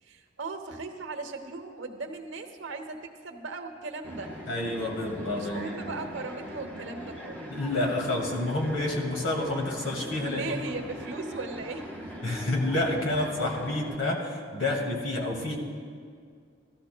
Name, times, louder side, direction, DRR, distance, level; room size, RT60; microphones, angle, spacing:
voice 1, 0.0-4.3 5.2-7.5 10.2-11.9, right 3 dB, 80° right, 5 dB, 0.9 m, -38 dB
sound 1, 4.0-13.9, equal, 10° left, 1.2 m, -41 dB
voice 2, 4.5-5.9 7.5-10.5 12.2-15.6, left 2 dB, 85° left, -1 dB, 2.0 m, -29 dB
16.0 x 13.0 x 2.2 m, 2.2 s
head